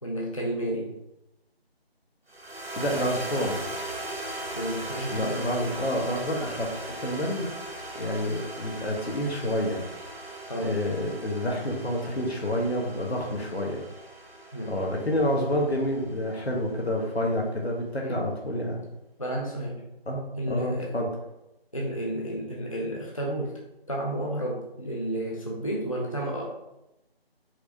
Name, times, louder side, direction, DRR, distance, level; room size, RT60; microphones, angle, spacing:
voice 1, 0.0-0.9 4.5-5.4 10.5-10.7 14.5-14.8 18.0-18.3 19.2-19.8 20.4-21.0 21.7-23.6 23.9-26.5, right 1 dB, 35° left, -2 dB, 0.5 m, -31 dB
sound 1, 2.3-16.7, right 1 dB, 70° right, 1.3 m, -39 dB
voice 2, 2.8-3.6 5.1-6.7 7.0-7.5 7.9-9.8 10.6-13.8 14.7-18.8 20.1-21.1, equal, 80° left, -1 dB, 1.4 m, -28 dB
4.6 x 3.4 x 2.8 m, 0.91 s
figure-of-eight pair, 165°, 31 cm